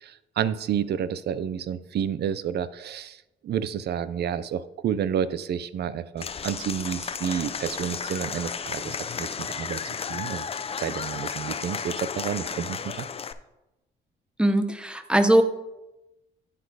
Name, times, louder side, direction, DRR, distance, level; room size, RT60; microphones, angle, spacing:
voice 1, 0.0-9.8 10.1-10.4 10.8-13.1, right 8 dB, 55° right, 16 dB, 0.5 m, -30 dB
Applause / Crowd, 6.2-13.3, left 6 dB, 30° left, 0.4 m, -33 dB
voice 2, 14.4-15.4, right 1 dB, 5° right, 9 dB, 0.7 m, -20 dB
9.9 x 4.0 x 4.7 m, 0.95 s
cardioid pair, 90°, 20 cm